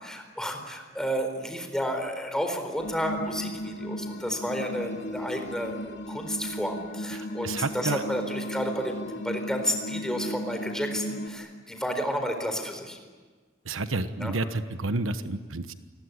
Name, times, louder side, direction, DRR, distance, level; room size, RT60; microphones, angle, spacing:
voice 1, 0.0-13.0 14.2-14.3, equal, 5° left, 5 dB, 4.2 m, -31 dB
sound 1, 2.8-11.3, left 1 dB, 60° left, 2.7 m, -36 dB
voice 2, 7.1-8.0 13.6-15.7, right 2 dB, 75° right, 10 dB, 1.2 m, -30 dB
28.0 x 21.5 x 9.7 m, 1.4 s
head